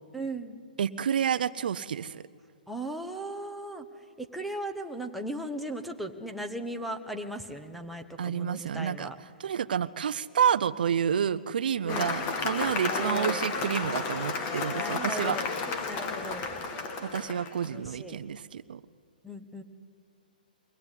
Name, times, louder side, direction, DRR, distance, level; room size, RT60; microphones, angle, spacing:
voice 1, 0.1-0.6 2.7-3.8 4.2-9.1 11.8-12.2 12.9-13.5 14.7-15.5 15.9-16.5 17.7-18.2 19.2-19.6, right 1 dB, ahead, 3 dB, 1.1 m, -37 dB
voice 2, 0.8-2.2 8.2-9.1 9.4-15.4 17.0-18.8, right 8 dB, 70° right, 15 dB, 0.6 m, -29 dB
Cheering / Applause, 11.9-17.6, left 4 dB, 25° left, 2.0 m, -32 dB
22.5 x 18.0 x 9.9 m, 2.2 s
hypercardioid pair, 150°, 5 cm